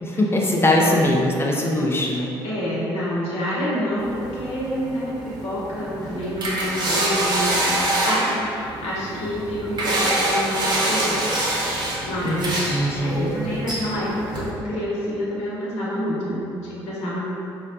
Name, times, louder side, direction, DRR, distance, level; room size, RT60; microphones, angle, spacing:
voice 1, 0.0-2.3 12.2-12.4 12.7-13.3, left 1 dB, 20° left, -2 dB, 0.5 m, -21 dB
voice 2, 0.8-1.2 2.4-11.3 11.7-17.2, equal, 65° left, -7 dB, 0.9 m, -28 dB
sound 1, 4.0-14.5, right 1 dB, 40° right, 0.9 m, -25 dB
3.9 x 2.1 x 2.6 m, 2.7 s
figure-of-eight pair, 45°, 12 cm